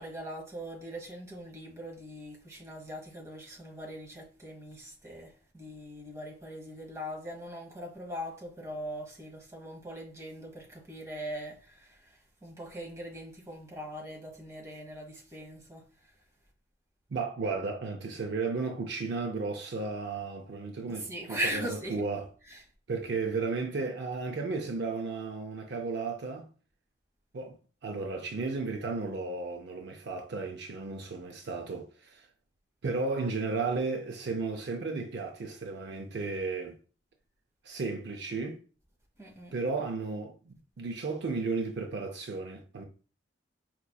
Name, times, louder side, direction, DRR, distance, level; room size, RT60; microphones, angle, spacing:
voice 1, 0.0-16.1 20.9-22.0 22.5-22.6 39.2-39.5, right 1 dB, 15° right, 1.2 m, -40 dB
voice 2, 17.1-22.2 22.9-26.5 27.3-27.6 27.8-32.3 32.8-36.8 37.6-38.6 39.5-42.8, right 4 dB, 60° right, 0.5 m, -34 dB
4.9 x 3.0 x 2.2 m
head